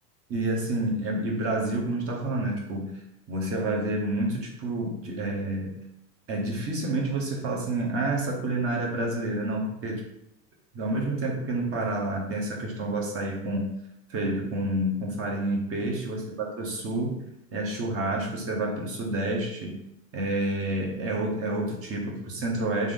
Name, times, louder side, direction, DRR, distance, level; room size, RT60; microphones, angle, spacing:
voice 1, 0.3-3.0 3.3-5.8 6.3-10.1 10.7-13.8 14.1-17.2 17.5-19.8 20.1-22.9, right 2 dB, 30° right, 0 dB, 0.8 m, -29 dB
3.5 x 2.6 x 3.5 m, 0.81 s
supercardioid pair, 125°, 47 cm